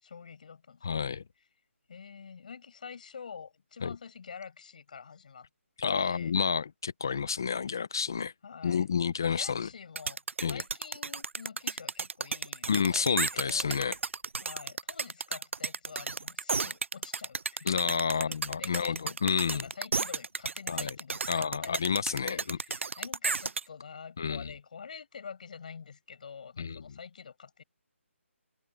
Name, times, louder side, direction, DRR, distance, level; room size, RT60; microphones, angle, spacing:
voice 1, 0.0-1.2 1.9-5.5 5.9-6.3 8.4-8.9 9.2-10.2 10.5-13.8 14.4-19.2 19.5-21.8 22.3-27.6, left 6 dB, 35° left, 7.0 m, -47 dB
voice 2, 0.8-1.2 3.8-3.9 5.8-8.3 8.6-9.7 10.4-10.6 12.7-14.0 17.7-19.7 20.7-21.0 21.3-22.6 24.2-24.5 26.6-26.8, left 6 dB, 15° left, 0.3 m, -30 dB
sound 1, 10.0-23.6, right 4 dB, 65° right, 0.5 m, -33 dB
hypercardioid pair, 180°, 7 cm